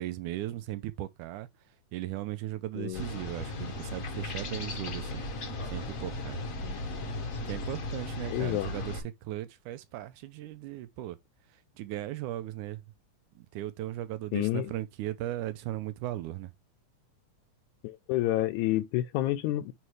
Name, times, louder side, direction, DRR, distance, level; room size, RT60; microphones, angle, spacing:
voice 1, 0.0-1.5 1.9-5.3 5.7-6.4 7.5-11.2 11.8-12.8 13.4-16.5, right 14 dB, 85° right, 2.2 m, -37 dB
sound 1, 2.9-9.0, left 2 dB, 55° left, 0.8 m, -36 dB
voice 2, 6.6-7.0 8.3-8.7 14.3-14.7 17.8-19.7, left 15 dB, 80° left, 1.9 m, -29 dB
9.4 x 3.2 x 3.2 m
omnidirectional pair, 3.5 m